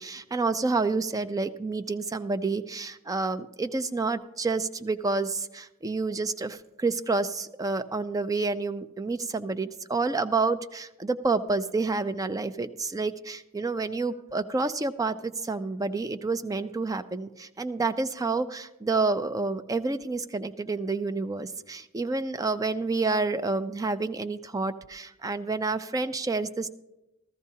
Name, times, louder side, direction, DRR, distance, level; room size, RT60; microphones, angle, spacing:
voice 1, 0.0-26.7, right 3 dB, 15° right, 11 dB, 0.4 m, -29 dB
14.0 x 14.0 x 2.8 m, 0.96 s
head